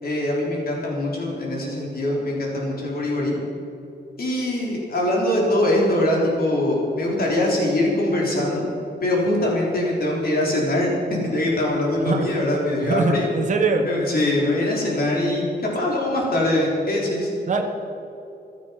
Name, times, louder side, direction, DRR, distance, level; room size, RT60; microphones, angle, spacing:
voice 1, 0.0-3.4 4.2-8.7 9.0-13.3 13.8-15.5 15.7-17.3, left 1 dB, 60° left, -2 dB, 3.7 m, -22 dB
voice 2, 12.8-13.9 17.5-17.9, right 3 dB, 45° right, 3 dB, 1.4 m, -22 dB
16.0 x 12.5 x 5.8 m, 2.7 s
wide cardioid pair, 180°, 18 cm